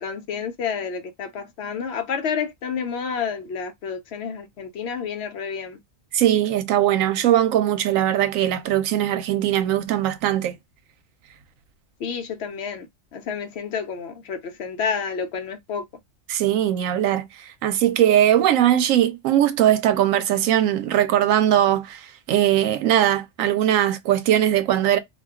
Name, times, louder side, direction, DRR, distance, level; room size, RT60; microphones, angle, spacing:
voice 1, 0.0-5.8 12.0-12.9 13.1-15.8, left 6 dB, 65° left, 0.7 m, -29 dB
voice 2, 6.1-10.6 16.3-17.3 17.6-22.0 22.3-25.0, right 11 dB, 90° right, 1.0 m, -20 dB
2.4 x 2.2 x 3.5 m
omnidirectional pair, 1.4 m